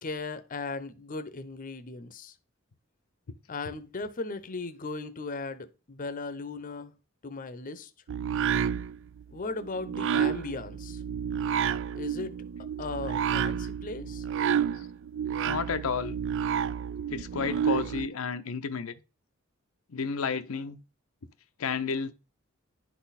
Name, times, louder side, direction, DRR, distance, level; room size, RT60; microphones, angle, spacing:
voice 1, 0.0-2.3 3.5-6.9 7.2-7.9 9.3-11.0 11.9-12.4 12.8-14.2, left 3 dB, 40° left, 0.7 m, -37 dB
sound 1, 8.1-18.1, right 8 dB, 60° right, 0.4 m, -30 dB
voice 2, 15.5-16.2 17.1-18.9 19.9-20.8 21.6-22.1, left 5 dB, 85° left, 0.6 m, -31 dB
10.5 x 4.1 x 4.1 m
head